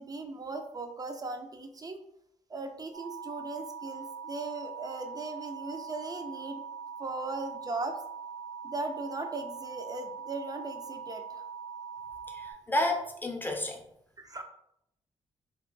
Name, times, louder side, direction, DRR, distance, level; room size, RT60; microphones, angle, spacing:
voice 1, 0.0-2.0 2.5-6.6 7.0-8.0 8.6-11.4 14.2-14.4, right 3 dB, 30° right, 5 dB, 0.6 m, -38 dB
sound 1, 2.9-12.5, right 6 dB, 85° right, 1.0 m, -42 dB
voice 2, 12.3-13.8, left 1 dB, 15° left, 2 dB, 0.7 m, -31 dB
2.7 x 2.3 x 3.9 m, 0.75 s
cardioid pair, 60°, 13 cm